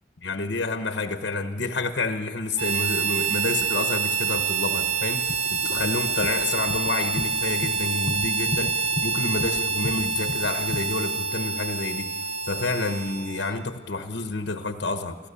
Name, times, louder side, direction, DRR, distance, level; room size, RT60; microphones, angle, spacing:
voice 1, 0.2-12.1 12.5-15.2, left 3 dB, 85° left, 7 dB, 1.1 m, -29 dB
Harmonica, 2.6-13.6, right 5 dB, 70° right, 2.2 m, -27 dB
sound 1, 4.2-10.8, left 2 dB, 45° left, 0.9 m, -36 dB
30.0 x 13.5 x 6.9 m, 1.5 s
head